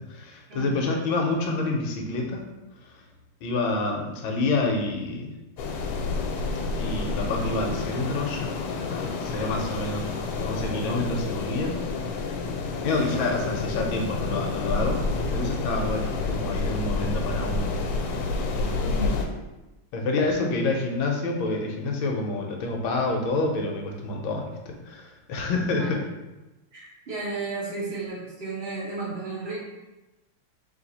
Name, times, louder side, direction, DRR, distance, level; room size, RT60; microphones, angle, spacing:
voice 1, 0.0-2.4 3.4-5.3 6.8-8.5 8.9-11.7 12.8-15.0 15.3-17.7 18.6-19.0 19.9-26.0, left 2 dB, 75° left, 1 dB, 1.4 m, -28 dB
sound 1, 5.6-19.2, left 3 dB, 90° left, 1.6 m, -29 dB
voice 2, 18.8-19.2 25.8-26.0 26.7-29.6, right 3 dB, 55° right, -8 dB, 0.7 m, -33 dB
3.2 x 3.2 x 4.1 m, 1.0 s
omnidirectional pair, 2.4 m